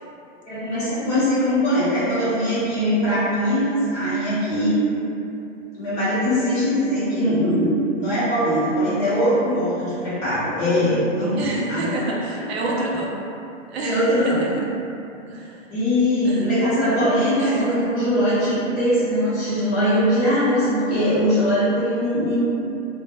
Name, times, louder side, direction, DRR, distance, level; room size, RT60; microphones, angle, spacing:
voice 1, 0.5-4.8 5.8-12.0 13.8-14.5 15.7-22.4, equal, 20° left, -13 dB, 0.6 m, -21 dB
voice 2, 11.3-13.1 13.7-14.7 15.2-15.6 16.2-16.5 17.4-17.8, right 2 dB, 60° right, -3 dB, 0.5 m, -28 dB
2.1 x 2.0 x 2.9 m, 2.8 s
hypercardioid pair, 150°, 37 cm